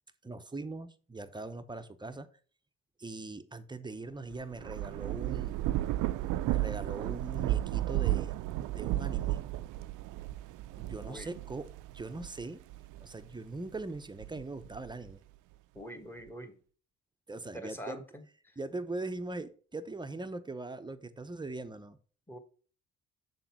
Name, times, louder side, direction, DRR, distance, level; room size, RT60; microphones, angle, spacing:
voice 1, 0.2-2.3 3.0-5.6 6.5-8.4 8.7-9.4 10.8-12.6 13.0-15.2 17.3-18.0 18.6-22.0, right 2 dB, 15° right, 0.7 m, -41 dB
Thunder / Rain, 4.3-13.2 13.8-15.1, right 15 dB, 90° right, 0.5 m, -33 dB
voice 2, 15.7-16.6 17.5-18.2 22.3-22.4, equal, 5° left, 1.4 m, -44 dB
7.2 x 3.9 x 5.8 m
cardioid pair, 90°, 30 cm